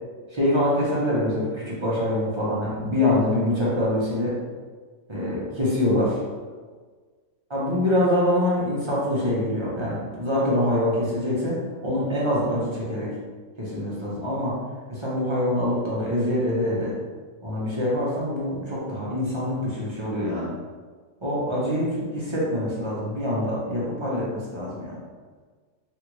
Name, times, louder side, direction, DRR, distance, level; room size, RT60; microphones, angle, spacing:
voice 1, 0.3-4.4 5.1-6.2 7.5-13.1 13.6-14.6 14.9-16.9 17.4-20.5 21.2-25.0, left 1 dB, 30° right, -7 dB, 0.6 m, -25 dB
3.4 x 2.4 x 3.0 m, 1.5 s
omnidirectional pair, 1.4 m